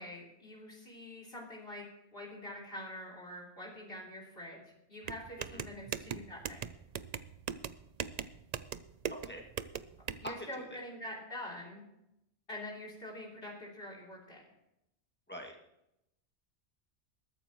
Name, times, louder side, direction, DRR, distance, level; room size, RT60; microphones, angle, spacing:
voice 1, 0.0-1.8 2.1-4.6 4.9-6.6 10.2-11.8 12.5-14.4, left 1 dB, 55° left, -3 dB, 3.7 m, -45 dB
sound 1, 5.0-10.3, right 7 dB, 50° right, 0.5 m, -40 dB
voice 2, 9.1-9.4 10.2-10.8 15.3-15.5, equal, 10° left, 0 dB, 2.3 m, -44 dB
21.0 x 13.5 x 3.1 m, 0.84 s
omnidirectional pair, 1.2 m